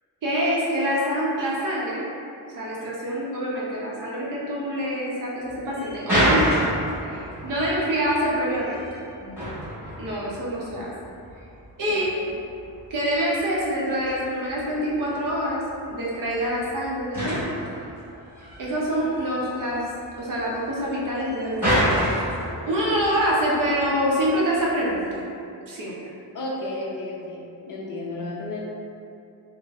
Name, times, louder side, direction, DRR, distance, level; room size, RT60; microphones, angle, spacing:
voice 1, 0.2-2.0 2.6-6.6 7.0-8.9 9.2-9.3 10.0-10.9 11.8-12.1 12.9-15.6 15.9-17.5 18.6-19.9 20.2-22.3 22.7-25.2 25.7-26.1, equal, 50° right, -5 dB, 0.7 m, -26 dB
sound 1, 5.5-25.2, equal, 5° right, 1.4 m, -30 dB
voice 2, 26.3-28.6, left 2 dB, 50° left, -4 dB, 0.5 m, -32 dB
3.9 x 2.1 x 2.5 m, 2.6 s
wide cardioid pair, 160°, 41 cm